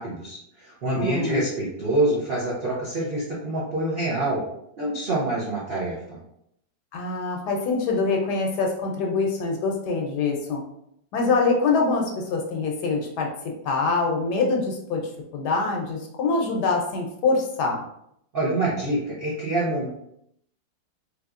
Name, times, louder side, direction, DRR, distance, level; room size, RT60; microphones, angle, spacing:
voice 1, 0.0-4.4 4.8-6.2 18.3-19.9, right 2 dB, 80° right, -6 dB, 0.5 m, -26 dB
voice 2, 0.9-1.5 6.9-10.6 11.1-13.3 13.6-15.0 15.3-17.8, left 4 dB, 70° left, 1 dB, 1.1 m, -24 dB
3.4 x 2.9 x 2.4 m, 0.74 s
omnidirectional pair, 2.1 m